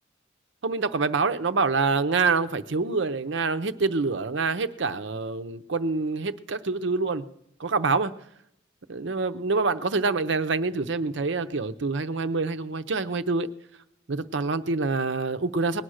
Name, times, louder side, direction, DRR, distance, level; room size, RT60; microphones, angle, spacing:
voice 1, 0.6-7.3 7.6-8.1 8.9-13.5 14.1-15.8, right 4 dB, 65° right, 10 dB, 0.7 m, -26 dB
19.5 x 8.9 x 6.4 m, 0.79 s
head